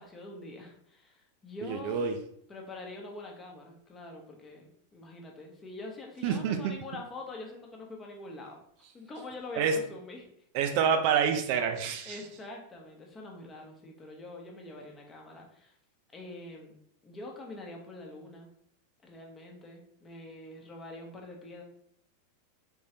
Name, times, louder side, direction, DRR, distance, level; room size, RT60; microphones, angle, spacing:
voice 1, 0.0-2.1 2.5-10.3 12.0-15.8 16.1-16.7 17.0-18.5 19.0-21.6, left 2 dB, 20° left, 1 dB, 0.9 m, -45 dB
voice 2, 1.6-2.2 6.2-6.6 9.6-9.8 10.5-12.2, right 7 dB, 45° right, 5 dB, 0.4 m, -27 dB
3.6 x 3.1 x 2.9 m, 0.67 s
figure-of-eight pair, 90°, 0 cm